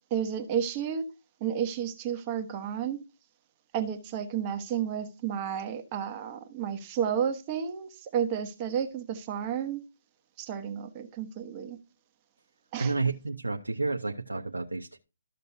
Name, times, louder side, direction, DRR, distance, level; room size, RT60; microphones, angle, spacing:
voice 1, 0.1-1.0 1.4-3.0 3.7-9.8 10.4-11.8 12.7-12.9, right 8 dB, 25° right, 1.2 m, -31 dB
voice 2, 12.8-15.0, right 3 dB, 85° right, 0.8 m, -30 dB
13.5 x 6.6 x 2.7 m
figure-of-eight pair, 140°, 0 cm